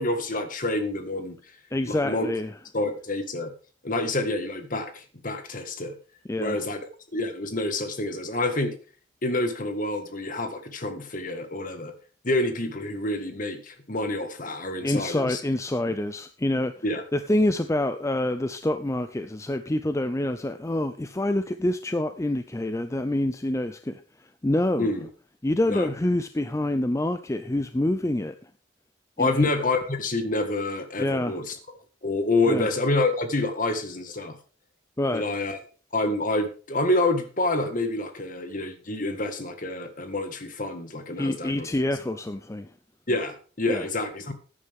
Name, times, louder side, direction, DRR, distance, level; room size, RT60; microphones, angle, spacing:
voice 1, 0.0-1.4 1.9-2.3 2.7-3.5 3.8-6.0 6.4-6.8 7.1-8.7 9.2-11.9 12.2-15.4 15.9-16.0 16.8-17.0 24.8-25.1 25.7-25.9 29.2-31.6 32.0-34.4 35.1-35.6 35.9-41.7 43.1-44.3, left 2 dB, 45° left, 7 dB, 1.7 m, -27 dB
voice 2, 1.7-2.5 6.3-6.6 14.8-16.7 17.1-24.9 25.4-28.5 29.2-29.5 31.0-31.4 32.5-32.7 35.0-35.2 41.2-42.7 43.7-43.9, left 1 dB, 15° left, 10 dB, 0.5 m, -26 dB
14.5 x 9.8 x 3.6 m, 0.38 s
head